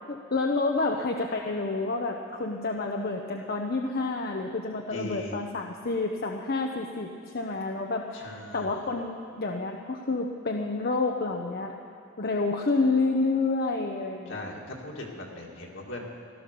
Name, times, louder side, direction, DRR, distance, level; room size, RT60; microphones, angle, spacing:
voice 1, 0.1-11.7 12.2-14.5, left 3 dB, 50° left, 2 dB, 0.8 m, -29 dB
voice 2, 4.9-5.4 8.1-8.8 14.3-16.1, left 1 dB, 70° left, -1 dB, 2.4 m, -39 dB
16.0 x 12.5 x 6.8 m, 2.3 s
head